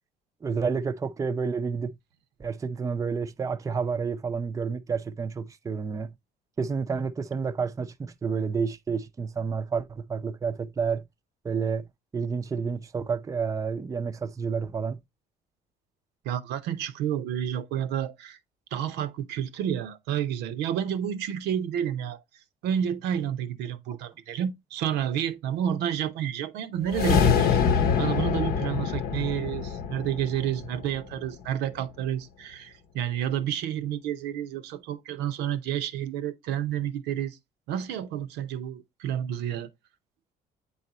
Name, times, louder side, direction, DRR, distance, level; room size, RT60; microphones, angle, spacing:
voice 1, 0.4-1.9 2.4-6.1 6.6-11.0 11.4-11.9 12.1-15.0, right 5 dB, 20° right, 0.4 m, -30 dB
voice 2, 16.2-18.4 18.7-22.2 22.6-27.6 28.0-37.4 37.7-39.7, right 10 dB, 85° right, 0.7 m, -30 dB
sound 1, 26.8-31.2, left 6 dB, 65° left, 0.8 m, -25 dB
8.3 x 4.1 x 2.8 m
cardioid pair, 110°, 17 cm